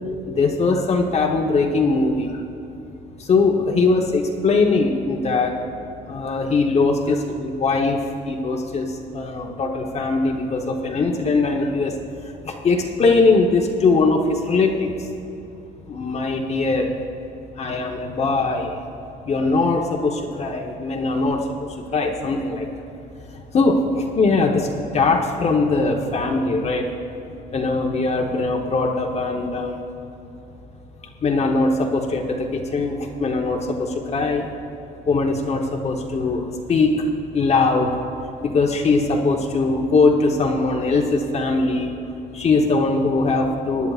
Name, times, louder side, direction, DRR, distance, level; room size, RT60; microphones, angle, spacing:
voice 1, 0.3-2.4 3.2-5.5 6.1-8.0 8.3-11.9 12.4-14.9 15.9-16.9 17.6-18.8 19.3-22.7 23.5-24.7 24.9-26.8 27.5-29.8 31.2-34.5 35.1-37.0 37.3-37.9 38.4-41.9 42.3-43.9, left 3 dB, 40° left, 1 dB, 1.0 m, -21 dB
19.5 x 10.5 x 2.4 m, 2.9 s
cardioid pair, 110°, 17 cm